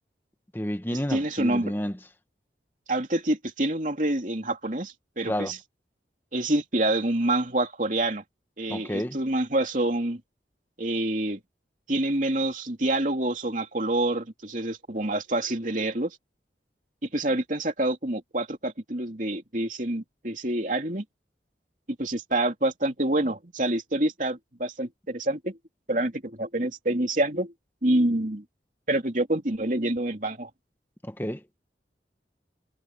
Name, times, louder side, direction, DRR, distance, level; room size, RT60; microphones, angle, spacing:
voice 1, 0.5-2.0 5.3-5.5 8.7-9.2 31.0-31.4, equal, 10° left, 1.2 m, -30 dB
voice 2, 1.1-1.7 2.9-5.6 6.3-8.2 8.6-10.2 10.8-11.4 11.9-16.2 17.1-21.0 22.0-25.6 25.9-27.5 27.8-28.4 28.9-30.5, right 1 dB, 45° right, 3.1 m, -27 dB
head